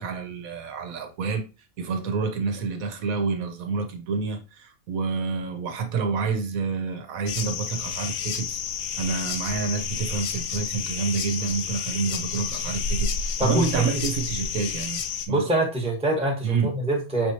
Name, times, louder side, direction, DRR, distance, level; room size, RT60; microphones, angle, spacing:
voice 1, 0.0-1.4 1.8-8.6 9.0-15.5 16.4-16.7, right 5 dB, 70° right, 1.3 m, -28 dB
sound 1, 7.3-15.3, left 6 dB, 85° left, 1.1 m, -30 dB
voice 2, 13.4-13.9 15.3-17.3, right 1 dB, 5° right, 1.0 m, -25 dB
5.9 x 3.1 x 2.7 m
omnidirectional pair, 1.5 m